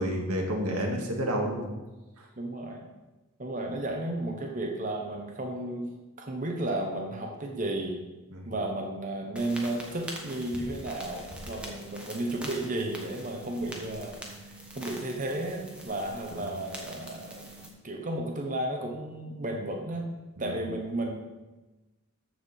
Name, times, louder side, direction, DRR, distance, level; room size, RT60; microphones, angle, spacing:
voice 1, 0.0-1.7 8.3-8.5 16.3-16.4 20.4-20.6, equal, 90° right, 1 dB, 1.8 m, -30 dB
voice 2, 2.4-2.8 3.4-5.9 6.2-8.0 8.4-14.2 14.7-17.5 17.8-20.1 20.4-21.2, right 1 dB, 35° right, 1 dB, 1.1 m, -33 dB
sound 1, 9.4-17.7, right 1 dB, 5° right, 1.3 m, -43 dB
13.5 x 4.7 x 5.6 m, 1.1 s
head